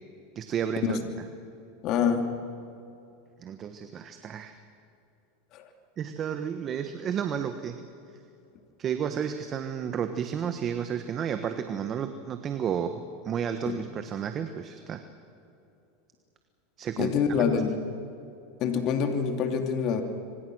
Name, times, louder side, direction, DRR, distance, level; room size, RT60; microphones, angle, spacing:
voice 1, 0.3-1.0 3.4-4.6 6.0-7.8 8.8-15.0 16.8-17.1, right 8 dB, 35° right, 8 dB, 1.4 m, -32 dB
voice 2, 1.8-2.3 5.5-5.7 13.7-13.8 17.0-17.8 18.6-20.0, left 6 dB, 45° left, 5 dB, 2.9 m, -26 dB
26.0 x 25.0 x 6.4 m, 2.6 s
supercardioid pair, 125°, 0 cm